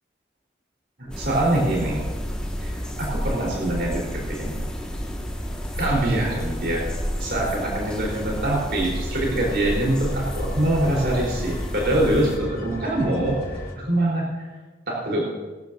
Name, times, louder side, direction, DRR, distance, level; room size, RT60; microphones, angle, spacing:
sound 1, 1.0-13.7, left 1 dB, 60° left, 3.9 m, -39 dB
voice 1, 1.0-2.0 2.6-4.6 5.8-6.9 7.2-14.3 14.9-15.2, right 1 dB, 70° right, -4 dB, 4.0 m, -24 dB
sound 2, 1.1-12.4, equal, 5° left, 1.7 m, -31 dB
22.5 x 12.5 x 2.7 m, 1.3 s
head